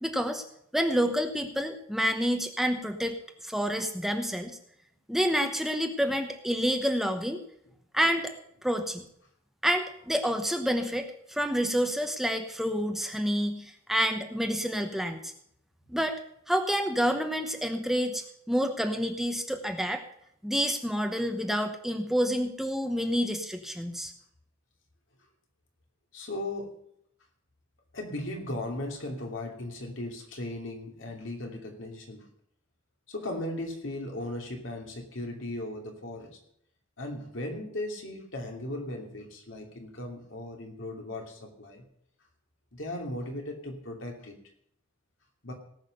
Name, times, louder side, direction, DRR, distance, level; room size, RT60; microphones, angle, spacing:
voice 1, 0.0-0.4 0.7-3.2 3.4-4.6 5.1-7.4 7.9-8.3 8.6-9.0 9.6-15.3 15.9-16.2 16.5-20.0 20.4-24.1, equal, ahead, 5 dB, 0.9 m, -28 dB
voice 2, 26.1-26.8 27.9-32.2 33.1-36.4 37.0-41.8 42.7-44.3 45.4-45.5, left 1 dB, 70° left, 1 dB, 2.8 m, -37 dB
18.5 x 6.2 x 6.6 m, 0.70 s
head